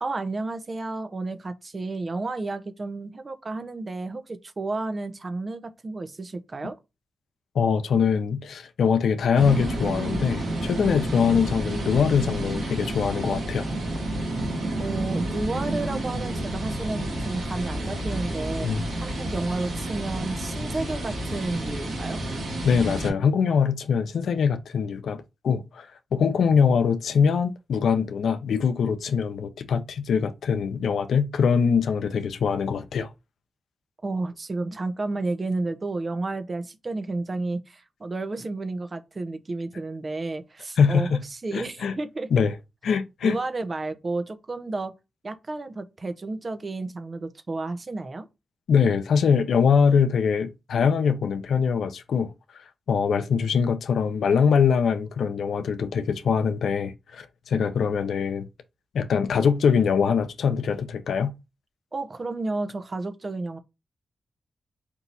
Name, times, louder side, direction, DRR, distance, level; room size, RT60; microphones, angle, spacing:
voice 1, 0.0-6.7 14.8-18.7 19.0-22.2 34.0-42.3 43.2-44.9 45.2-48.3 61.9-63.6, right 3 dB, 45° right, 0.8 m, -31 dB
voice 2, 7.5-13.7 18.6-18.9 22.6-33.1 40.8-41.2 41.5-41.9 42.3-42.6 42.8-43.4 48.7-52.3 52.9-58.5 58.9-61.3, left 6 dB, 85° left, 0.5 m, -23 dB
sound 1, 9.4-23.1, right 1 dB, 90° right, 1.9 m, -30 dB
4.6 x 2.7 x 4.0 m
cardioid pair, 45°, 0 cm